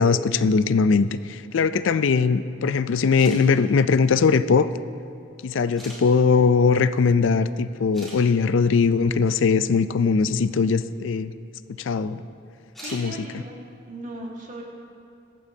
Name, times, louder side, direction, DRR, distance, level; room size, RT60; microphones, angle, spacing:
voice 1, 0.0-4.7 5.4-11.3 11.8-12.2 12.9-13.1, left 5 dB, 70° left, 14 dB, 0.4 m, -20 dB
sound 1, 3.2-3.4 4.5-4.6 5.8-6.0 7.4-7.5 7.9-8.2 10.8-10.9 12.7-13.1, equal, ahead, 2.3 m, -41 dB
voice 2, 12.8-13.5 13.9-14.6, right 2 dB, 40° right, -2 dB, 1.7 m, -37 dB
21.5 x 8.5 x 2.8 m, 2.4 s
head